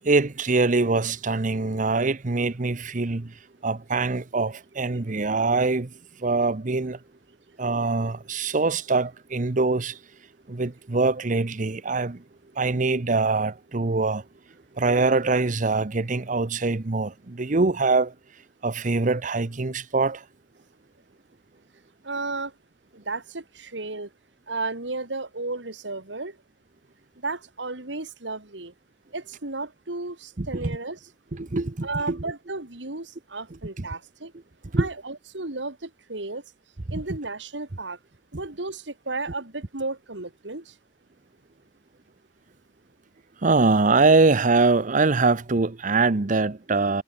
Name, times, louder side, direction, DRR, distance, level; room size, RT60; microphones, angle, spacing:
voice 1, 0.0-3.3 3.6-5.9 6.2-7.0 7.6-10.0 10.5-12.2 12.6-14.2 14.8-18.1 18.6-20.2 30.4-30.7 31.3-32.2 33.8-33.9 34.7-34.9 36.9-37.0 43.4-47.0, right 3 dB, 45° right, 0.9 m, -23 dB
voice 2, 22.0-22.5 22.9-24.1 24.5-26.4 27.2-28.7 29.1-31.0 31.8-34.3 34.8-36.4 36.9-38.0 38.3-40.7, right 3 dB, 80° right, 2.7 m, -33 dB
head